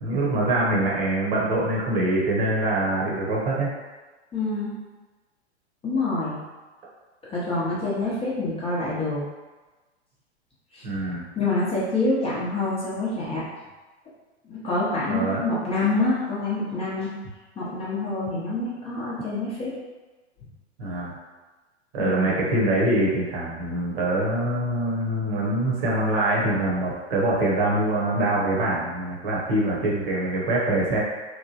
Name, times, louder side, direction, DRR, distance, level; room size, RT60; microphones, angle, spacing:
voice 1, 0.0-3.7 10.8-11.3 15.1-15.4 20.8-21.1 21.9-31.0, right 1 dB, 55° right, -4 dB, 1.0 m, -24 dB
voice 2, 4.3-4.7 5.8-6.4 7.3-9.2 10.7-10.8 11.4-13.4 14.5-17.1 17.6-19.7 22.0-22.4, left 2 dB, 15° left, -8 dB, 0.7 m, -26 dB
3.0 x 2.1 x 2.7 m, 1.2 s
hypercardioid pair, 105°, 35 cm